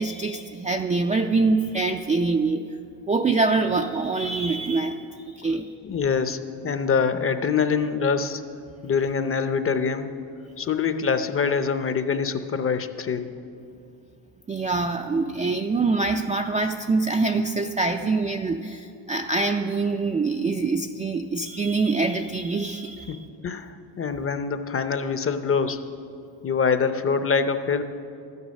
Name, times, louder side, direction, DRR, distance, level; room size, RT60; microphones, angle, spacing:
voice 1, 0.0-2.6 3.1-5.7 14.5-23.2, right 3 dB, 20° right, 4 dB, 0.3 m, -24 dB
voice 2, 5.8-8.4 8.8-10.1 10.6-13.3 23.1-23.2 23.4-25.8 26.4-27.8, left 5 dB, 30° left, 10 dB, 0.6 m, -24 dB
12.0 x 9.6 x 6.4 m, 2.5 s
cardioid pair, 105°, 43 cm